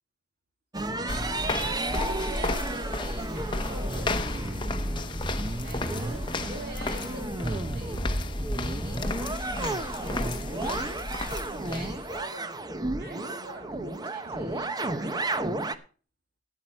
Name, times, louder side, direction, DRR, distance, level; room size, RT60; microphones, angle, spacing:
sound 1, 0.7-15.8, right 2 dB, 20° right, 0.8 m, -32 dB
sound 2, 1.1-12.2, left 2 dB, 25° left, 0.9 m, -33 dB
voice 1, 1.8-4.4 5.6-9.2 9.5-15.4, right 1 dB, 55° right, 2.5 m, -45 dB
14.0 x 9.3 x 4.4 m
head